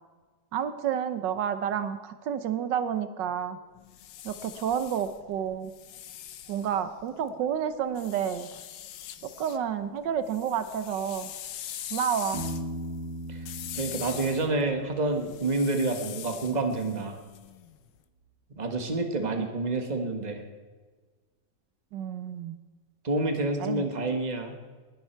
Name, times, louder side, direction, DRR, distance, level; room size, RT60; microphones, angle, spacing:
voice 1, 0.5-3.6 4.2-5.7 6.5-8.5 9.4-11.3 11.9-12.4 19.4-19.5 21.9-22.6 23.6-23.9, right 8 dB, 80° right, 11 dB, 1.5 m, -30 dB
sound 1, 3.7-7.3 8.0-9.6 10.0-17.9, left 11 dB, 85° left, 1.5 m, -42 dB
Piano, 12.3-16.0, equal, 65° right, 2.4 m, -39 dB
voice 2, 13.8-17.2 18.6-20.4 23.0-24.6, right 2 dB, 25° right, 5 dB, 1.6 m, -28 dB
19.5 x 11.5 x 4.6 m, 1.4 s
omnidirectional pair, 1.9 m